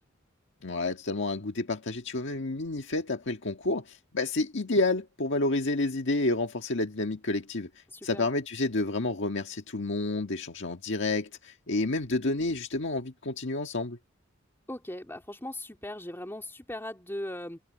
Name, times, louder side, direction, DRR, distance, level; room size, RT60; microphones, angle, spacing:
voice 1, 0.6-7.7 8.0-14.0, left 2 dB, 60° left, 1.7 m, -30 dB
voice 2, 7.9-8.3 14.7-17.6, left 1 dB, 10° left, 2.7 m, -39 dB
head